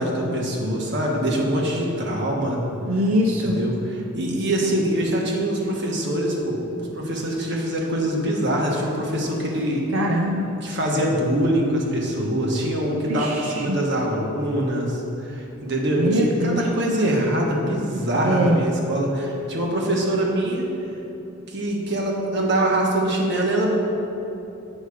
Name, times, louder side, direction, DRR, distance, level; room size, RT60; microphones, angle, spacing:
voice 1, 0.0-2.6 3.3-6.6 6.9-9.8 10.6-20.7 21.5-23.7, right 1 dB, 60° right, -1 dB, 1.3 m, -24 dB
voice 2, 2.8-3.6 9.9-10.5 13.0-13.8 16.0-16.7 18.2-18.6, equal, 90° right, 1 dB, 0.6 m, -22 dB
7.9 x 5.6 x 4.9 m, 3.0 s
head